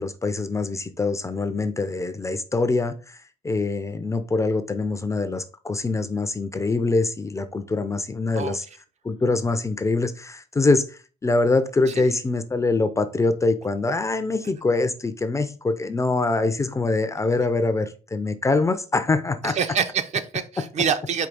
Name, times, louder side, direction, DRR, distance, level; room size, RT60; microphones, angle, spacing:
voice 1, 0.0-8.6 9.0-19.6, left 3 dB, 20° left, 0.4 m, -24 dB
voice 2, 19.4-21.3, right 7 dB, 45° right, 0.5 m, -26 dB
4.6 x 2.8 x 3.8 m
cardioid pair, 110°, 17 cm